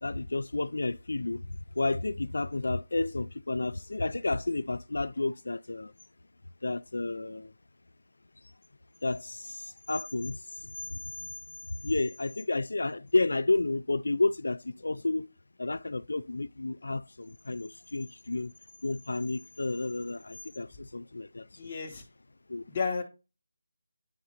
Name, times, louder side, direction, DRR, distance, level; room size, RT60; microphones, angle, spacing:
voice 1, 0.0-5.9 6.6-7.5 9.0-11.0 11.8-15.3 15.6-18.5 18.8-21.7 22.5-22.7, left 2 dB, 85° left, 0.3 m, -31 dB
voice 2, 21.5-22.0 22.7-23.0, left 5 dB, 25° left, 0.7 m, -32 dB
9.3 x 3.8 x 2.8 m
figure-of-eight pair, 175°, 0 cm